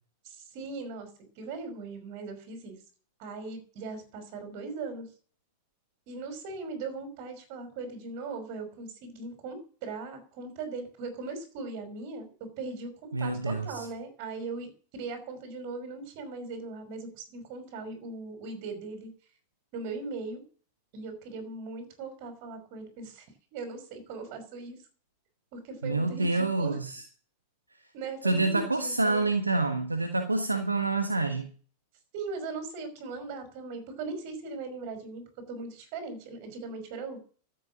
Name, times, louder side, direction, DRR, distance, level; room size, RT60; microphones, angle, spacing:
voice 1, 0.2-1.1 1.4-2.8 3.2-5.1 6.1-19.1 19.7-20.4 20.9-23.2 23.5-24.8 25.5-26.8 27.9-29.3 32.1-37.2, right 3 dB, 45° right, 7 dB, 5.4 m, -39 dB
voice 2, 13.1-13.9 25.8-27.0 28.2-31.5, right 3 dB, 80° right, 6 dB, 1.3 m, -27 dB
13.0 x 8.5 x 7.5 m, 0.43 s
figure-of-eight pair, 90°, 0 cm